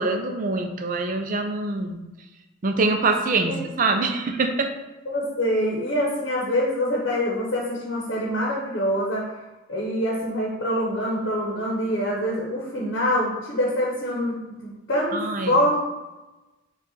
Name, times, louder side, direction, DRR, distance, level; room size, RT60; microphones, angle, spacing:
voice 1, 0.0-2.0 2.6-4.7 15.1-15.6, right 3 dB, 45° right, 5 dB, 0.5 m, -24 dB
voice 2, 5.1-9.2 9.7-15.8, equal, 60° left, -3 dB, 0.9 m, -25 dB
5.2 x 2.4 x 4.0 m, 1.1 s
head